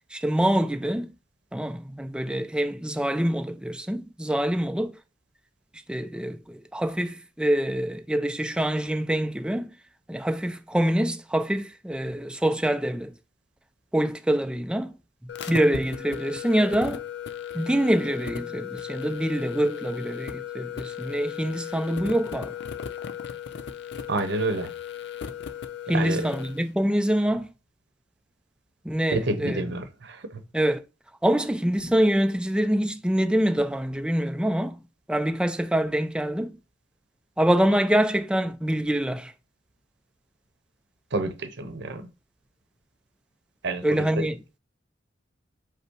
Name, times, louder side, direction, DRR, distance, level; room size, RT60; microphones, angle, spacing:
voice 1, 0.1-1.1 1.5-4.9 5.9-9.7 10.1-13.1 13.9-14.9 15.5-17.0 17.5-22.5 25.9-27.5 28.8-29.6 30.5-30.8 31.2-34.7 35.1-36.5 37.4-39.3 43.8-44.4, right 1 dB, 5° right, 0.4 m, -25 dB
sound 1, 15.3-26.6, left 8 dB, 65° left, 0.5 m, -36 dB
voice 2, 24.1-24.7 25.9-26.3 29.1-30.4 41.1-42.1 43.6-44.3, right 2 dB, 65° right, 0.8 m, -29 dB
5.4 x 2.0 x 4.5 m
head